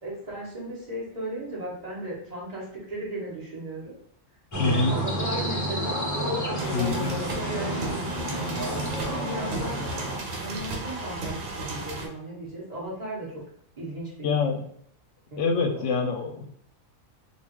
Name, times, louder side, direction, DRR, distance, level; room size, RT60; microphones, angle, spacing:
voice 1, 0.0-3.9 4.6-9.8 10.4-13.3 13.8-14.3 15.3-16.0, right 1 dB, 30° right, -6 dB, 1.2 m, -36 dB
sound 1, 4.5-10.2, equal, 20° left, 0.4 m, -30 dB
voice 2, 4.6-5.0 6.7-7.2 14.2-14.6 15.4-16.5, left 4 dB, 70° left, 3 dB, 0.9 m, -25 dB
sound 2, 6.6-12.1, right 2 dB, 85° right, 1.1 m, -34 dB
3.6 x 2.4 x 3.0 m, 0.68 s
omnidirectional pair, 1.4 m